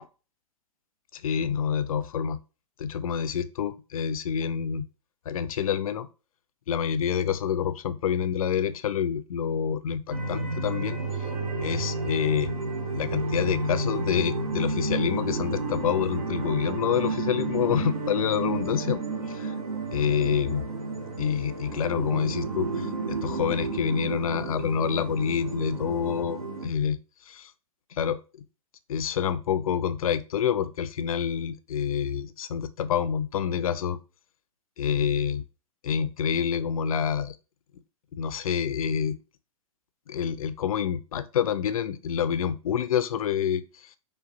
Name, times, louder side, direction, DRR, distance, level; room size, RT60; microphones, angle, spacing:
voice 1, 1.1-2.4 2.8-4.9 5.3-6.1 6.7-11.0 11.6-12.5 13.0-19.0 19.3-19.5 19.9-20.7 21.2-27.0 27.3-27.5 27.9-28.2 28.9-34.0 34.8-35.4 35.8-37.4 38.1-39.2 40.1-44.0, left 8 dB, 70° left, 0.4 m, -27 dB
sound 1, 10.1-26.7, right 3 dB, 75° right, 1.1 m, -31 dB
5.0 x 2.2 x 2.6 m
figure-of-eight pair, 110°, 19 cm